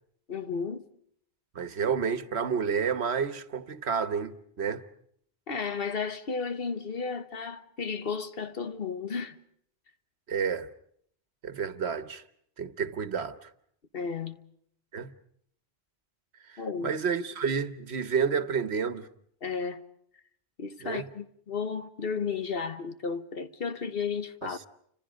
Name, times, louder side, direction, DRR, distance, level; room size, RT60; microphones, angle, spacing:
voice 1, 0.3-0.9 5.5-9.4 13.9-14.4 16.6-16.9 19.4-19.8 20.6-24.6, left 5 dB, 65° left, 1.4 m, -33 dB
voice 2, 1.5-4.8 10.3-10.7 11.4-12.2 12.6-13.5 14.9-15.1 16.5-19.1 20.8-21.1 24.5-24.7, right 6 dB, 90° right, 1.4 m, -30 dB
30.0 x 26.0 x 5.1 m
omnidirectional pair, 1.1 m